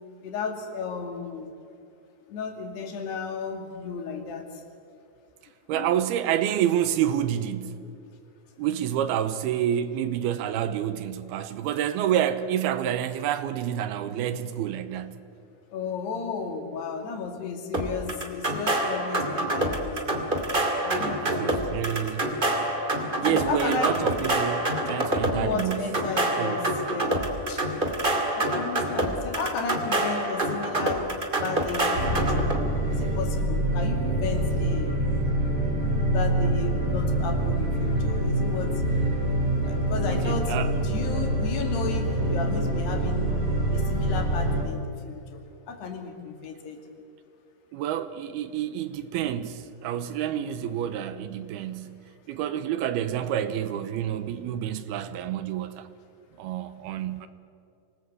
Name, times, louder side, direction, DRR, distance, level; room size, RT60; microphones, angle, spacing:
voice 1, 0.2-1.5 2.3-4.5 5.7-5.9 15.7-20.2 20.8-22.4 23.3-24.0 25.3-27.2 27.5-27.6 28.4-31.1 31.3-32.5 32.9-34.9 36.1-38.8 39.6-43.4 43.7-45.4 45.7-46.8 50.4-50.7, left 5 dB, 80° left, 4.5 m, -34 dB
voice 2, 5.7-7.9 8.6-15.2 21.2-22.3 23.2-25.9 26.4-26.6 40.2-40.7 47.7-52.0 52.3-55.9 56.4-57.3, right 10 dB, 80° right, 2.8 m, -28 dB
sound 1, 17.7-32.6, right 1 dB, 20° right, 1.6 m, -27 dB
sound 2, 31.9-44.6, right 1 dB, 50° right, 6.5 m, -25 dB
26.0 x 19.5 x 8.1 m
omnidirectional pair, 4.6 m